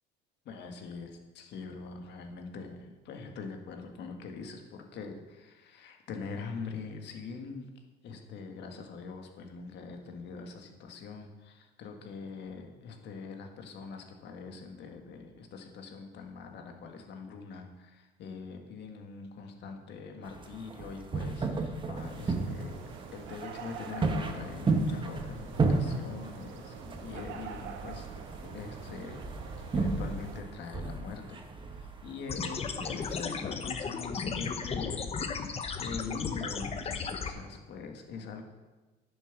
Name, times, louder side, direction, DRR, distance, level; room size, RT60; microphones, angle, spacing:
voice 1, 0.4-7.7 8.0-22.8 23.1-28.1 28.4-29.2 29.7-31.4 31.7-38.4, left 5 dB, 60° left, 4 dB, 1.8 m, -43 dB
sound 1, 20.3-33.2, right 3 dB, 25° right, 1.2 m, -34 dB
sound 2, 21.9-30.4, right 6 dB, 70° right, 1.3 m, -45 dB
sound 3, 32.3-37.3, left 5 dB, 30° left, 0.9 m, -35 dB
10.5 x 7.2 x 6.1 m, 1.2 s
cardioid pair, 125°, 20 cm